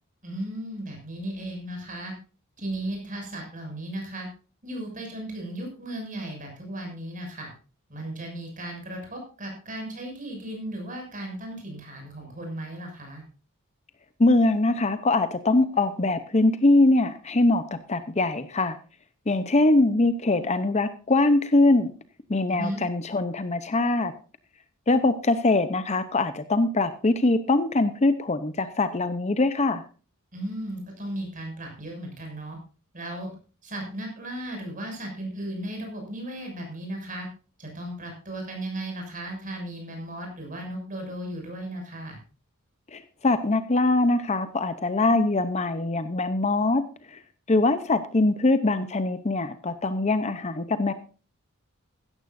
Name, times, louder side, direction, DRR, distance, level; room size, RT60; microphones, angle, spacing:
voice 1, 0.2-2.1 2.6-4.3 4.6-7.5 7.9-13.2 22.5-22.8 30.3-32.6 32.9-33.3 33.6-37.3 37.6-42.2, right 1 dB, 40° right, 2 dB, 6.4 m, -35 dB
voice 2, 14.2-18.8 19.3-21.9 22.3-24.1 24.9-29.8 42.9-46.8 47.5-50.9, left 2 dB, 30° left, 11 dB, 0.7 m, -22 dB
16.0 x 13.5 x 2.6 m, 0.36 s
head